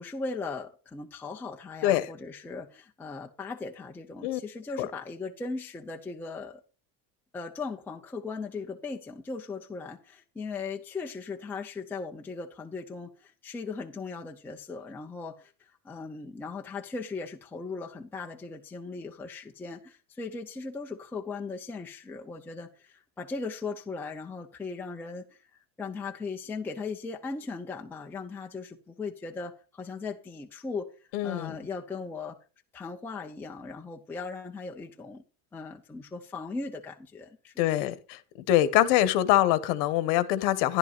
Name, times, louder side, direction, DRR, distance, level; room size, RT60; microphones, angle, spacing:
voice 1, 0.0-6.6 7.3-25.3 25.8-30.9 31.2-32.4 32.7-35.2 35.5-38.0, left 4 dB, 5° left, 0.6 m, -38 dB
voice 2, 31.1-31.5 37.6-38.2 38.5-40.8, left 13 dB, 55° left, 1.3 m, -24 dB
13.5 x 11.0 x 2.5 m
cardioid pair, 170°, 44 cm